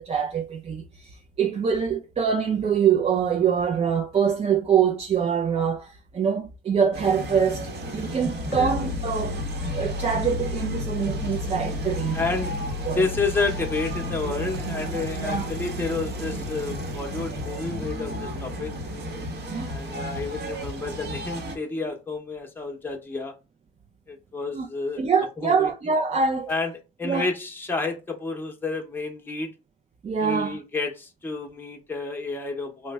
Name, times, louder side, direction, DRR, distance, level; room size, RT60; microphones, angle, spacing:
voice 1, 0.0-9.4 9.7-12.2 12.9-13.0 15.2-15.5 19.5-19.7 24.5-24.7 25.0-26.5 27.0-27.3 30.0-30.6, right 7 dB, 30° right, 0.4 m, -24 dB
sound 1, 6.9-21.6, equal, 55° right, 1.0 m, -33 dB
sound 2, 8.5-19.9, left 3 dB, 65° left, 0.6 m, -35 dB
voice 2, 12.1-18.7 19.7-23.3 24.1-25.1 25.4-25.7 26.5-26.7 27.0-29.5 30.2-32.9, left 3 dB, 10° left, 0.7 m, -30 dB
sound 3, 14.2-21.5, right 9 dB, 80° right, 0.5 m, -42 dB
3.0 x 2.1 x 3.4 m
cardioid pair, 90°, 20 cm